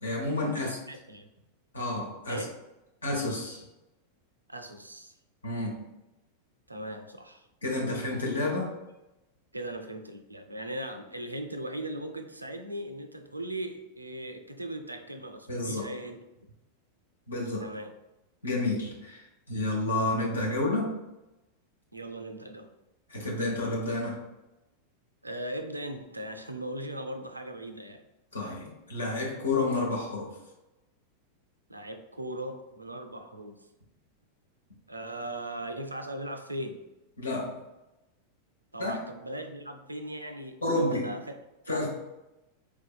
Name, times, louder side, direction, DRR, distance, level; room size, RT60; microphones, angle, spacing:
voice 1, 0.0-0.8 1.7-2.4 3.0-3.6 5.4-5.8 7.6-8.7 15.5-15.9 17.3-17.7 18.4-20.9 23.1-24.2 28.3-30.3 37.2-37.6 38.8-38.9 40.6-41.1 41.7-41.9, left 2 dB, 75° left, -1 dB, 0.9 m, -30 dB
voice 2, 0.5-1.3 2.3-2.6 4.5-5.1 6.7-7.5 9.5-16.2 17.6-17.9 21.9-22.7 25.2-28.1 31.7-33.6 34.9-36.8 38.7-41.4 41.7-41.9, right 1 dB, 85° right, 7 dB, 0.3 m, -38 dB
4.4 x 2.6 x 2.3 m, 0.96 s
figure-of-eight pair, 90°, 0 cm